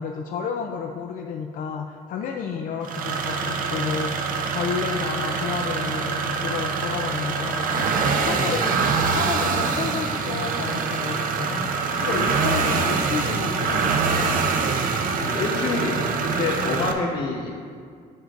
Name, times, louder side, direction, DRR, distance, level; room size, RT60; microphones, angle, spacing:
voice 1, 0.0-11.7 12.0-14.5, left 6 dB, 65° left, 3 dB, 0.4 m, -31 dB
sound 1, 2.8-16.9, right 5 dB, 65° right, 0.7 m, -24 dB
voice 2, 15.1-17.7, left 3 dB, 90° left, -3 dB, 1.5 m, -27 dB
8.9 x 7.8 x 2.5 m, 2.1 s
cardioid pair, 115°, 15 cm